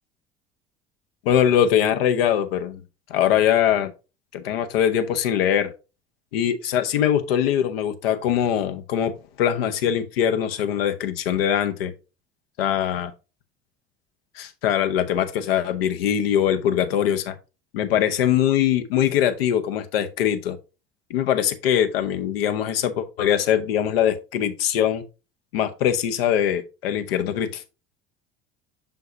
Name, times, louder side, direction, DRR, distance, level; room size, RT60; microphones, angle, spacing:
voice 1, 1.2-2.8 3.1-3.9 4.3-5.7 6.3-9.1 9.4-11.9 12.6-13.1 14.4-17.3 17.7-20.6 21.1-25.0 25.5-27.7, left 10 dB, 65° left, 1.0 m, -22 dB
6.7 x 5.7 x 2.7 m
figure-of-eight pair, 65°, 31 cm